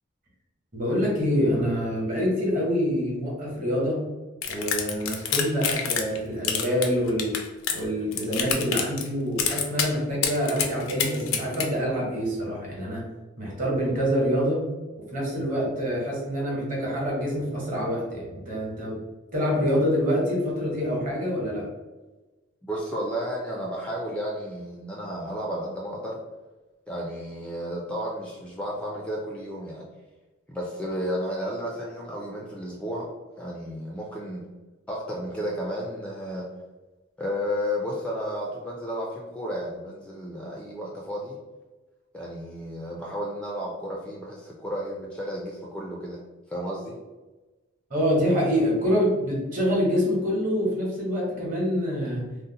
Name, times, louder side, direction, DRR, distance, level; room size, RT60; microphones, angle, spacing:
voice 1, 0.7-4.0 4.5-7.4 7.7-13.0 13.4-14.6 15.1-19.0 19.3-21.7 47.9-52.2, equal, 40° right, -3 dB, 1.1 m, -26 dB
sound 1, 4.4-6.2 6.4-7.8 8.1-9.1 9.4-9.9 10.2-11.7, left 7 dB, 90° left, 0.5 m, -26 dB
voice 2, 22.7-26.2 26.9-29.8 30.5-33.1 33.4-34.4 34.9-36.5 37.2-41.4 42.1-46.2 46.5-47.0, equal, 5° left, -3 dB, 0.3 m, -32 dB
2.6 x 2.1 x 3.8 m, 1.2 s
head